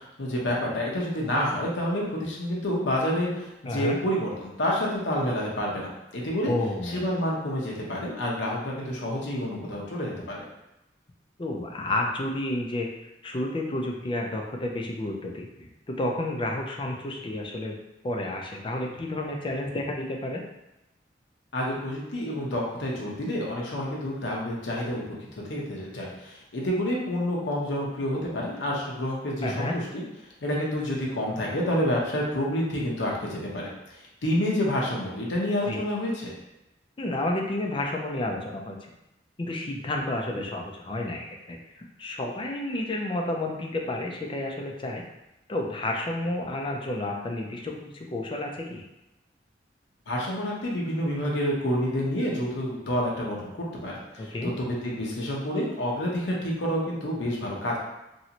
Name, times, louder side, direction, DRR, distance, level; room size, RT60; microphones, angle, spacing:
voice 1, 0.0-6.5 6.9-10.5 21.5-29.8 30.4-36.3 50.1-57.8, equal, 80° left, -3 dB, 0.8 m, -29 dB
voice 2, 3.7-4.0 6.5-7.1 11.4-12.9 13.2-17.8 18.0-20.4 29.4-29.8 35.7-35.8 37.0-38.9 39.4-45.0 45.5-48.8 54.2-54.5, left 1 dB, 30° left, 1 dB, 0.4 m, -31 dB
3.1 x 2.7 x 2.8 m, 0.93 s
head